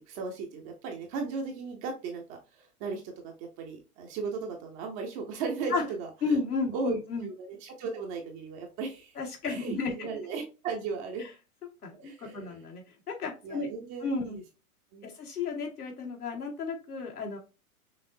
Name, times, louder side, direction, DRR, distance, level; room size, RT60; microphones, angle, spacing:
voice 1, 0.0-6.4 6.7-9.1 9.4-11.3 11.9-12.6 13.4-14.4 14.9-15.1, right 4 dB, 15° right, 2 dB, 0.3 m, -36 dB
voice 2, 6.2-7.3 9.2-10.1 11.8-13.7 14.0-14.4 15.0-17.4, left 4 dB, 85° left, 1 dB, 1.8 m, -33 dB
5.7 x 3.1 x 2.5 m, 0.31 s
hypercardioid pair, 115°, 44 cm